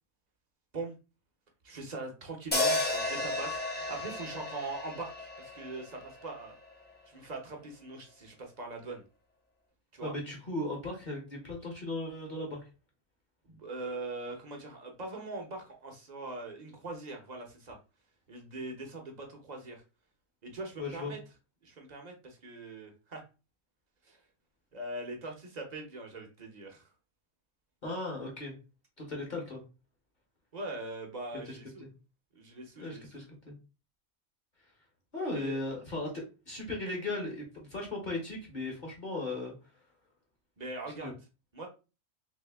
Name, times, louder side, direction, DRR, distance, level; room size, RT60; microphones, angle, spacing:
voice 1, 1.6-6.5 7.1-9.0 9.9-10.1 13.5-17.8 18.3-19.8 20.4-21.2 21.6-23.2 24.1-24.2 24.7-26.9 30.5-31.8 32.3-33.2 35.3-35.6 40.6-41.1 41.5-41.7, right 2 dB, 40° right, 3 dB, 0.7 m, -41 dB
sound 1, 2.5-6.8, left 2 dB, 10° left, 0.4 m, -33 dB
voice 2, 10.0-12.6 20.8-21.1 27.8-28.6 29.0-29.6 31.5-31.9 32.8-33.6 35.1-39.5 41.0-41.1, left 2 dB, 40° left, 0 dB, 1.0 m, -37 dB
3.1 x 2.8 x 3.3 m, 0.31 s
omnidirectional pair, 1.5 m